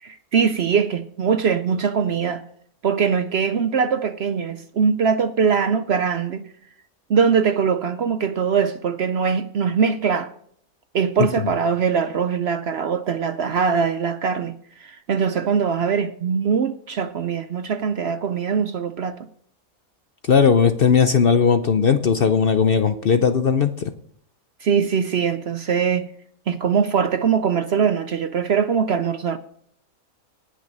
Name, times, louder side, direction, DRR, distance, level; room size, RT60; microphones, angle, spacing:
voice 1, 0.0-2.4 2.8-6.5 7.1-10.3 10.9-19.2 22.8-23.1 24.6-26.1 26.5-29.4, right 6 dB, 60° right, 0.7 m, -22 dB
voice 2, 20.3-23.9, left 6 dB, 55° left, 0.7 m, -17 dB
18.5 x 6.3 x 5.3 m
omnidirectional pair, 1.5 m